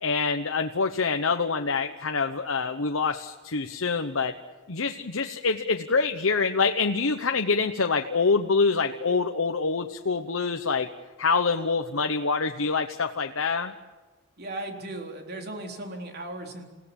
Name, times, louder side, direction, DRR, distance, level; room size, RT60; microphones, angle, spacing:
voice 1, 0.0-4.3 4.7-10.9 11.2-13.7, left 4 dB, 80° left, 5 dB, 1.1 m, -26 dB
voice 2, 14.4-16.7, right 1 dB, 50° right, 3 dB, 4.0 m, -36 dB
28.5 x 17.0 x 8.9 m, 1.3 s
head